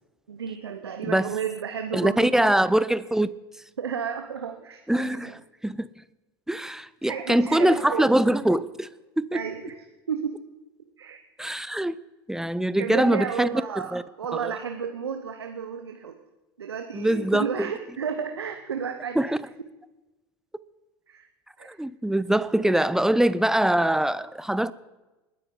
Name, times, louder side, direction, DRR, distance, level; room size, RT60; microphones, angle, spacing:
voice 1, 0.3-2.7 3.8-5.4 7.0-8.1 9.3-9.8 10.1-10.4 11.0-11.2 12.8-16.2 16.6-19.2 21.1-21.3 21.6-21.8, right 7 dB, 85° right, 0.9 m, -32 dB
voice 2, 1.9-3.3 4.9-5.9 6.5-8.9 9.2-9.4 11.4-12.0 12.3-13.5 13.9-14.0 14.3-14.4 16.9-17.5 19.2-19.3 21.6-24.7, right 1 dB, 5° right, 0.6 m, -23 dB
28.5 x 9.7 x 3.8 m
hypercardioid pair, 75°, 13 cm